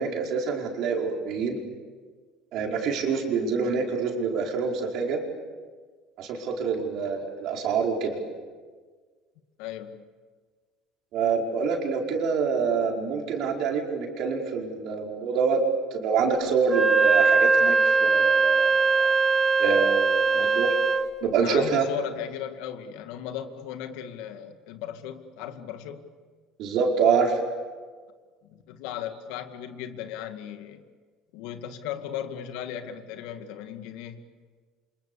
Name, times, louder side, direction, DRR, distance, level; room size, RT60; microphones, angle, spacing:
voice 1, 0.0-1.6 2.5-5.2 6.2-8.2 11.1-15.6 15.9-19.1 19.6-20.7 21.2-21.9 26.6-27.4, right 5 dB, 50° right, 0 dB, 5.0 m, -26 dB
voice 2, 9.6-10.0 21.4-26.1 28.4-30.8 31.3-34.2, left 10 dB, 75° left, 7 dB, 2.2 m, -36 dB
Wind instrument woodwind instrument, 16.6-21.1, right 4 dB, 15° right, 1.3 m, -21 dB
29.0 x 27.0 x 7.1 m, 1.5 s
cardioid pair, 160°, 0 cm